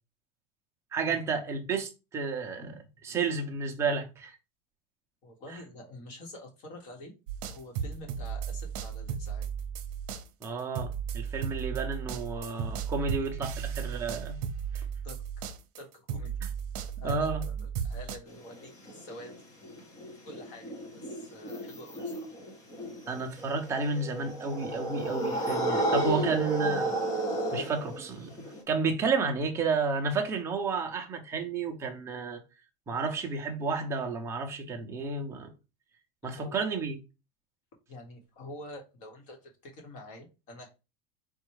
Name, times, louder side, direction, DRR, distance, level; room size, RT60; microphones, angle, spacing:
voice 1, 0.9-4.4 10.4-14.4 14.7-14.8 17.0-17.4 23.1-27.0 27.5-32.4 32.9-35.5 36.2-37.0, right 4 dB, 15° right, 0.6 m, -31 dB
voice 2, 5.2-7.1 7.4-9.5 13.2-13.3 15.0-15.5 15.8-16.3 17.0-19.7 20.2-20.6 20.9-22.4 36.2-36.6 37.9-40.7, left 1 dB, 40° left, 1.3 m, -47 dB
sound 1, 7.3-15.8 16.1-18.2, right 7 dB, 70° right, 0.8 m, -35 dB
sound 2, 18.3-28.6, right 1 dB, 20° left, 0.7 m, -32 dB
4.3 x 2.4 x 4.7 m
cardioid pair, 180°, 20 cm